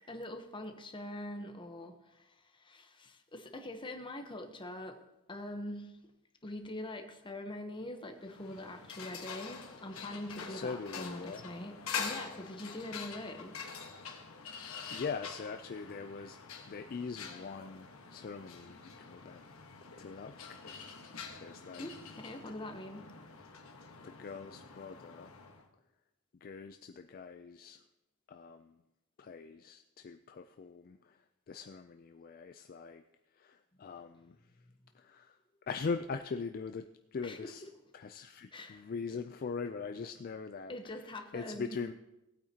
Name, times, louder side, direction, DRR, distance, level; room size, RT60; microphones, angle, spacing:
voice 1, 0.1-5.0 5.3-6.0 6.4-13.6 21.8-23.1 37.2-37.7 38.5-38.8 40.7-41.9, left 1 dB, 20° left, 6 dB, 0.9 m, -44 dB
sound 1, 8.2-25.6, left 6 dB, 70° left, 1.3 m, -46 dB
voice 2, 10.5-11.4 14.9-16.4 16.7-19.4 20.0-20.4 20.6-21.9 24.0-25.3 26.4-27.8 28.3-28.8 29.2-31.2 31.5-33.0 33.4-34.4 35.0-35.4 35.7-37.6 37.9-41.0 41.3-41.9, left 5 dB, 40° left, 8 dB, 0.3 m, -42 dB
18.0 x 8.6 x 2.8 m, 0.95 s
head